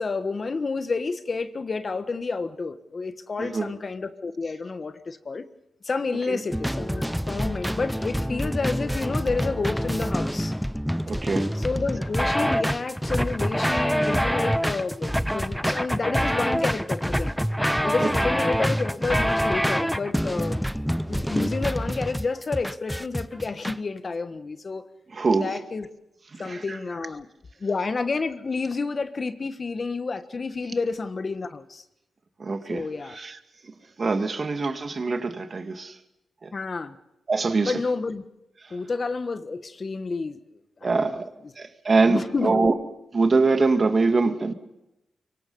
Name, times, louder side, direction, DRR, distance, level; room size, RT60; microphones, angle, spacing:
voice 1, 0.0-5.4 5.8-10.5 11.6-17.4 17.8-20.7 21.1-24.8 25.4-25.9 26.4-27.3 27.6-31.8 32.7-33.2 36.5-37.0 37.6-38.2 38.7-40.4 40.8-41.2 41.4-41.5 42.1-42.7, left 4 dB, 45° left, 1.5 m, -30 dB
sound 1, 6.5-23.8, equal, ahead, 0.7 m, -26 dB
voice 2, 11.1-11.5 18.0-18.1 25.1-25.5 26.3-26.8 32.4-33.4 34.0-36.0 36.4-36.5 37.3-37.8 40.8-41.3 41.6-42.7 43.1-44.5, right 3 dB, 45° right, 2.0 m, -24 dB
25.5 x 23.5 x 5.5 m
cardioid pair, 75°, 0 cm